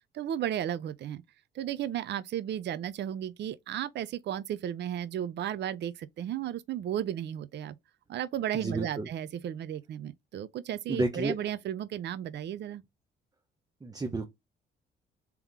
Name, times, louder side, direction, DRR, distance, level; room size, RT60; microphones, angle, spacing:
voice 1, 0.1-1.2 1.5-7.8 8.1-12.8, right 10 dB, 60° right, 0.5 m, -34 dB
voice 2, 8.5-9.1 10.9-11.5 13.8-14.3, right 2 dB, 20° right, 0.7 m, -31 dB
3.6 x 2.9 x 3.6 m
cardioid pair, 90°, 20 cm